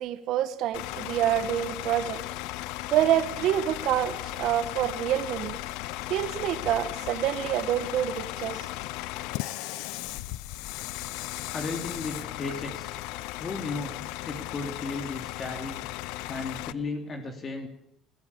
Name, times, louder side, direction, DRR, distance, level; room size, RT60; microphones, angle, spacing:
voice 1, 0.0-2.2 2.9-5.6 6.1-8.7, right 11 dB, 70° right, 10 dB, 1.8 m, -27 dB
Bus / Idling, 0.7-16.7, left 17 dB, 85° left, 0.7 m, -36 dB
voice 2, 11.5-12.9 13.4-14.0 14.2-15.8 16.3-17.7, left 3 dB, 40° left, 3 dB, 3.3 m, -34 dB
20.5 x 15.0 x 8.7 m, 0.80 s
supercardioid pair, 95°, 0 cm